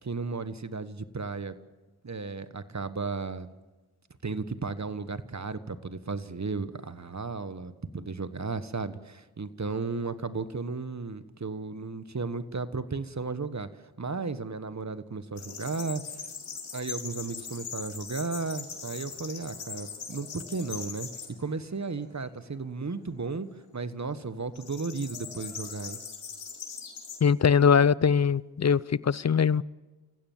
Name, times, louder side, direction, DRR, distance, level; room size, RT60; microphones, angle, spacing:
voice 1, 0.0-1.5 2.0-3.5 4.2-13.7 14.0-16.0 16.7-21.1 21.4-23.5 23.7-26.0, right 4 dB, 35° right, 1.4 m, -34 dB
sound 1, 15.4-21.3 21.8-22.4 24.5-27.2, left 6 dB, 80° left, 4.6 m, -40 dB
voice 2, 27.2-29.6, left 6 dB, 35° left, 0.6 m, -22 dB
28.0 x 15.5 x 7.4 m
cardioid pair, 45°, 49 cm